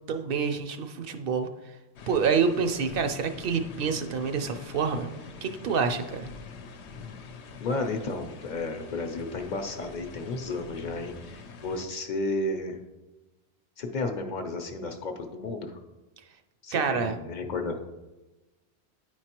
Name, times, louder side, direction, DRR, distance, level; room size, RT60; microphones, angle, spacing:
voice 1, 0.1-1.5 2.1-5.1 5.4-6.3 16.7-17.2, right 5 dB, 65° right, 7 dB, 0.7 m, -27 dB
sound 1, 2.0-11.9, left 4 dB, 85° left, 0.9 m, -45 dB
voice 2, 7.6-12.8 13.8-15.8 16.6-17.8, left 2 dB, 50° left, 5 dB, 0.7 m, -32 dB
9.5 x 4.6 x 2.9 m, 1.1 s
omnidirectional pair, 1.1 m